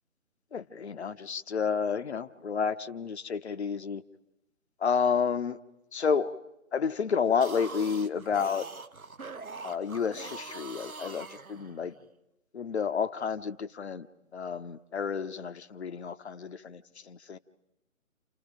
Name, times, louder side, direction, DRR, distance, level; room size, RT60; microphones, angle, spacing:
voice 1, 0.5-4.0 4.8-5.6 5.9-6.3 6.7-8.7 9.6-11.9 12.5-14.1 14.3-17.4, left 6 dB, 50° left, 10 dB, 0.9 m, -30 dB
sound 1, 7.3-12.0, right 4 dB, 85° right, 1.2 m, -43 dB
29.5 x 29.0 x 5.1 m, 0.92 s
figure-of-eight pair, 150°, 41 cm